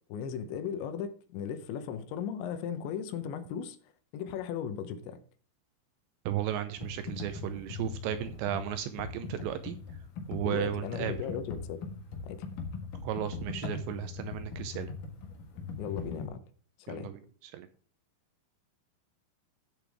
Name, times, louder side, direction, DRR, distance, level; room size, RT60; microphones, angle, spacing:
voice 1, 0.1-3.8 4.1-5.2 10.4-11.8 12.2-12.4 15.8-16.4 16.8-17.1, left 8 dB, 75° left, 3.1 m, -37 dB
voice 2, 6.3-9.8 10.3-11.1 13.0-14.9 16.9-17.7, right 11 dB, 80° right, 2.7 m, -35 dB
Computer keyboard, 6.8-16.3, left 4 dB, 60° left, 2.6 m, -40 dB
14.5 x 6.7 x 3.5 m
omnidirectional pair, 5.6 m